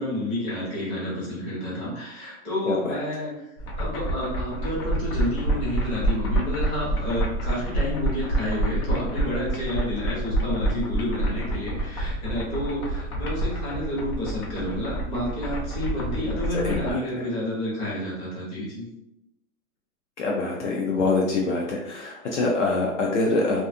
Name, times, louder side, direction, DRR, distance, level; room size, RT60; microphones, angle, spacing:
voice 1, 0.0-3.3 3.8-18.9, left 1 dB, 20° left, -7 dB, 0.7 m, -30 dB
voice 2, 2.7-3.2 16.5-17.3 20.2-23.6, left 3 dB, 55° left, -1 dB, 0.5 m, -25 dB
sound 1, 3.6-16.9, right 1 dB, 80° left, 0.9 m, -28 dB
2.5 x 2.3 x 2.5 m, 0.84 s
hypercardioid pair, 165°, 43 cm